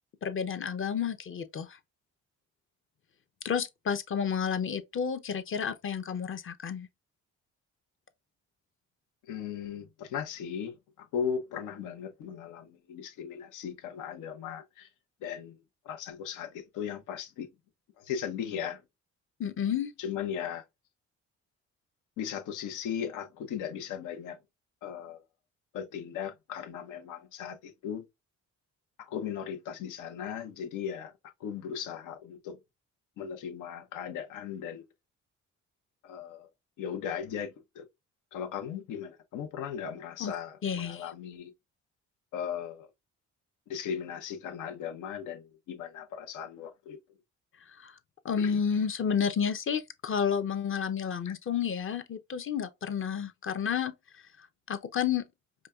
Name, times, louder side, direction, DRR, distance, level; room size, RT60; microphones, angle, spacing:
voice 1, 0.2-1.8 3.4-6.9 19.4-19.9 40.2-40.3 40.6-41.1 47.6-48.0 48.2-55.2, left 7 dB, 45° left, 0.7 m, -31 dB
voice 2, 9.3-14.9 15.2-15.6 15.8-17.5 18.0-18.8 20.0-20.6 22.2-24.4 24.8-25.2 25.7-28.0 29.0-31.1 31.4-32.6 33.2-34.8 36.0-36.5 36.8-37.9 38.3-41.5 42.3-42.9 43.7-47.0, left 8 dB, 90° left, 0.9 m, -37 dB
5.1 x 2.2 x 2.3 m
cardioid pair, 90°, 30 cm